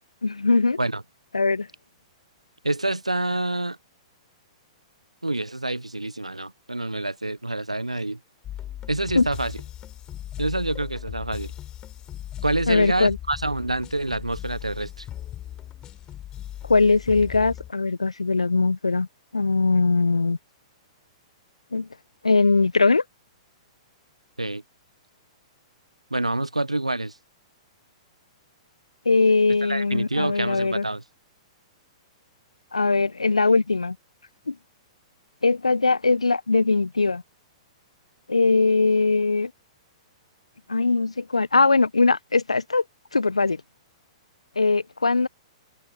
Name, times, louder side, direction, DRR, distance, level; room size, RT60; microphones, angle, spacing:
voice 1, 0.2-0.8 1.3-1.7 9.1-9.3 12.7-13.2 16.7-19.1 19.3-20.4 21.7-21.9 22.2-23.0 29.0-30.8 32.7-34.0 34.5-34.6 35.4-37.2 38.3-39.5 40.7-42.8 43.1-43.6 44.6-45.3, left 3 dB, 80° left, 1.1 m, -21 dB
voice 2, 2.6-3.8 5.2-8.2 8.9-9.5 10.4-11.5 12.4-15.1 24.4-24.6 26.1-27.2 29.6-31.0, right 2 dB, 90° right, 1.3 m, -27 dB
sound 1, 8.4-17.7, left 11 dB, 25° left, 6.7 m, -38 dB
open air
figure-of-eight pair, 110°, 3 cm